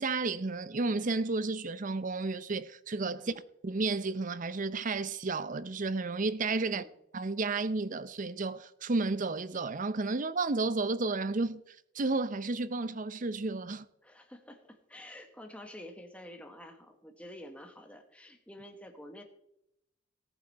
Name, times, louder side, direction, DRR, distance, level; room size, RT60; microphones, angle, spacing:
voice 1, 0.0-3.3 3.6-6.8 7.1-11.6 11.9-13.9, right 3 dB, 45° right, 0.6 m, -32 dB
voice 2, 14.0-19.2, left 1 dB, 5° left, 1.6 m, -49 dB
18.0 x 8.2 x 4.2 m
head